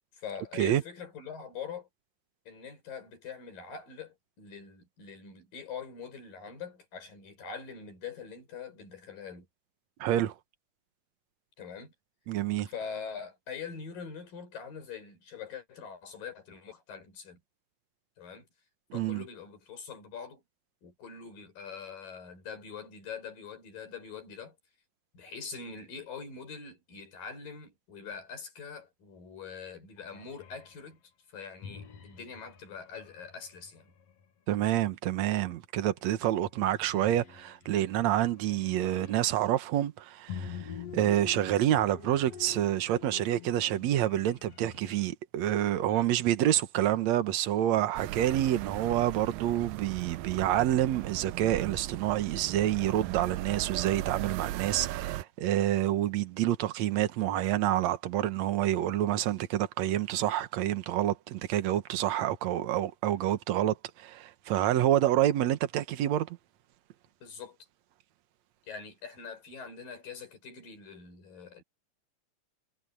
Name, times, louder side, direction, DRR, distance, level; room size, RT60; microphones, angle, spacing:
voice 1, 0.1-1.9 2.5-9.5 11.6-11.9 12.7-17.4 18.2-18.5 18.9-20.4 20.8-24.6 25.1-31.0 31.3-33.9 45.9-46.1 67.2-67.6 68.7-71.6, left 6 dB, 75° left, 7.5 m, -43 dB
voice 2, 10.0-10.4 12.3-12.7 18.9-19.2 34.5-66.4, right 12 dB, 60° right, 2.2 m, -28 dB
sound 1, 30.0-30.8 31.6-34.3 35.9-36.2 36.5-39.5 40.3-45.1, left 7 dB, 55° left, 2.4 m, -47 dB
sound 2, 48.0-55.2, right 16 dB, 85° right, 2.3 m, -37 dB
omnidirectional pair, 4.0 m